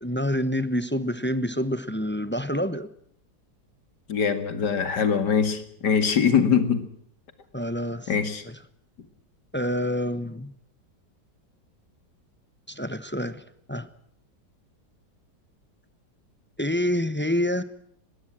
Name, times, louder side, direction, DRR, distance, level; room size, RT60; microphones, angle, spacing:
voice 1, 0.0-2.9 7.5-8.1 8.5-8.6 9.5-10.5 12.7-13.4 13.7-13.9 16.6-17.6, equal, 10° left, 0.7 m, -27 dB
voice 2, 4.1-6.9 8.1-8.4, left 6 dB, 70° left, 2.6 m, -23 dB
21.0 x 16.5 x 7.6 m
omnidirectional pair, 1.9 m